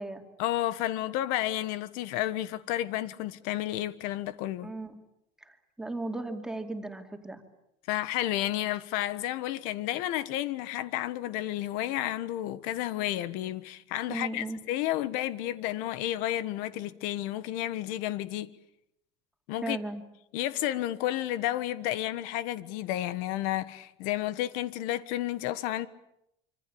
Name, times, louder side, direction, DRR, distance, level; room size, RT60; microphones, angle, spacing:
voice 1, 0.4-4.7 7.9-18.5 19.5-19.8 20.3-25.9, left 14 dB, 85° left, 1.4 m, -31 dB
voice 2, 4.6-5.0 5.4-7.4 14.1-14.6 19.6-20.0, right 2 dB, 5° right, 2.5 m, -36 dB
26.0 x 25.5 x 8.7 m
cardioid pair, 165°, 13 cm